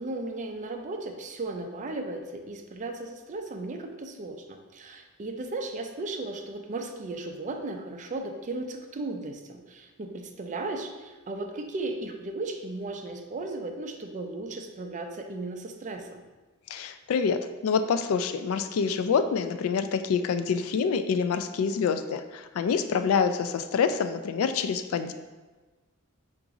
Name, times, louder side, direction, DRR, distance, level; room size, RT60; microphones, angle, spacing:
voice 1, 0.0-16.2, right 2 dB, 35° right, 4 dB, 0.4 m, -36 dB
voice 2, 16.7-25.1, left 6 dB, 70° left, 11 dB, 0.3 m, -26 dB
3.9 x 2.5 x 4.7 m, 1.3 s
head